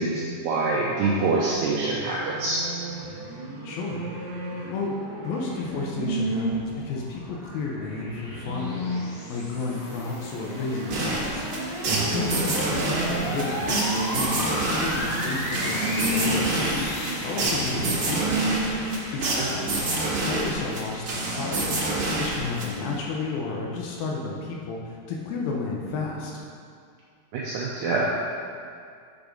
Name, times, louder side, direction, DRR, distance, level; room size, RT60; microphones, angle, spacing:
voice 1, 0.0-2.6 11.9-12.1 19.4-19.5 27.3-28.1, right 3 dB, 80° right, -4 dB, 1.9 m, -25 dB
sound 1, 0.9-6.6 7.3-9.3 9.8-19.1, right 2 dB, 65° right, 1.8 m, -33 dB
voice 2, 3.6-4.0 4.7-4.9 5.2-8.9 9.3-11.5 12.1-14.5 14.8-18.6 19.1-19.9 20.2-21.9 22.2-26.3, left 4 dB, 75° left, -2 dB, 2.4 m, -32 dB
sound 2, 6.2-22.1, equal, 60° left, 3.6 m, -35 dB
sound 3, 10.9-23.0, right 2 dB, 50° right, 2.0 m, -28 dB
7.2 x 5.2 x 5.1 m, 2.2 s
omnidirectional pair, 4.7 m